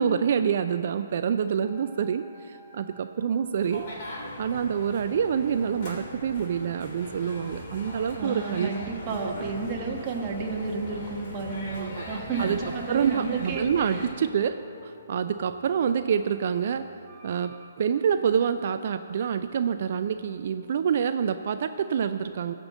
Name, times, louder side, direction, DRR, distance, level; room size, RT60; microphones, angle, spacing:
voice 1, 0.0-3.9 4.4-8.7 11.7-12.1 12.4-12.6 12.9-14.6 14.8-16.9 17.2-22.5, right 7 dB, 50° right, 10 dB, 0.4 m, -27 dB
sound 1, 1.6-17.7, left 1 dB, 10° left, 1.1 m, -51 dB
sound 2, 3.5-14.1, left 1 dB, 40° left, 3.1 m, -40 dB
voice 2, 8.1-14.0, right 4 dB, 30° right, 1 dB, 1.4 m, -32 dB
14.5 x 5.2 x 7.6 m, 2.5 s
figure-of-eight pair, 130°, 0 cm